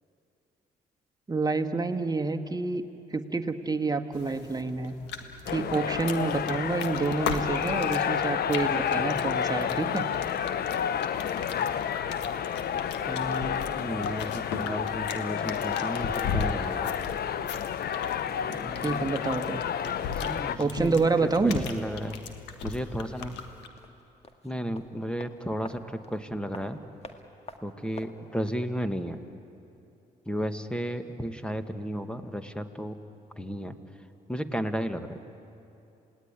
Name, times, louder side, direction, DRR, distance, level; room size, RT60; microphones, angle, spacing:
voice 1, 1.3-2.8 3.1-4.9 5.5-10.0 18.8-19.7 20.6-21.7, right 3 dB, 20° right, 5 dB, 1.8 m, -28 dB
sound 1, 4.1-23.7, left 5 dB, 85° left, 1.6 m, -39 dB
sound 2, 5.5-20.6, left 8 dB, 65° left, 0.9 m, -30 dB
voice 2, 13.0-17.0 18.5-19.1 20.1-22.2 22.6-23.4 24.4-26.8 27.6-29.2 30.3-33.0 33.4-33.8 34.3-35.2, equal, 5° left, 9 dB, 1.9 m, -34 dB
sound 3, 23.7-28.7 29.0-29.1, left 2 dB, 35° left, 2.1 m, -48 dB
27.5 x 18.5 x 9.9 m, 2.8 s
supercardioid pair, 60°, 18 cm